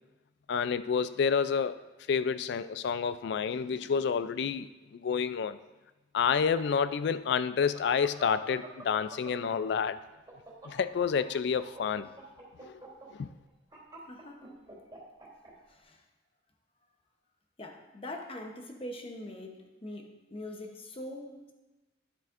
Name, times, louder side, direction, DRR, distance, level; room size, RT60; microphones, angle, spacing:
voice 1, 0.5-1.8 2.1-5.6 6.1-10.0 10.7-12.1 12.6-12.7 13.1-13.3, left 6 dB, 60° left, 14 dB, 0.3 m, -29 dB
sound 1, 6.2-9.8 10.1-15.5, right 2 dB, 20° right, 2.9 m, -48 dB
voice 2, 14.1-14.5 15.7-16.0 17.6-21.5, left 1 dB, 30° left, 4 dB, 0.8 m, -43 dB
10.0 x 7.4 x 2.5 m, 1.1 s
head